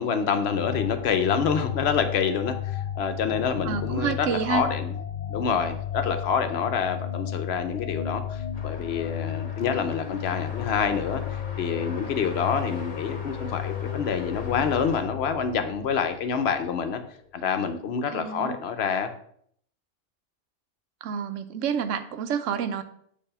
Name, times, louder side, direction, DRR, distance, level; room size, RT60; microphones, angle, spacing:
voice 1, 0.0-4.9 5.3-11.2 11.6-17.0 17.3-19.1, left 6 dB, 60° left, 8 dB, 0.9 m, -27 dB
sound 1, 0.5-16.9, left 9 dB, 85° left, 0.3 m, -34 dB
voice 2, 3.6-4.6 18.1-18.6 21.0-22.8, right 7 dB, 80° right, 10 dB, 0.9 m, -29 dB
sound 2, 8.5-15.0, left 3 dB, 40° left, 1.1 m, -43 dB
6.7 x 2.7 x 5.5 m, 0.65 s
omnidirectional pair, 1.3 m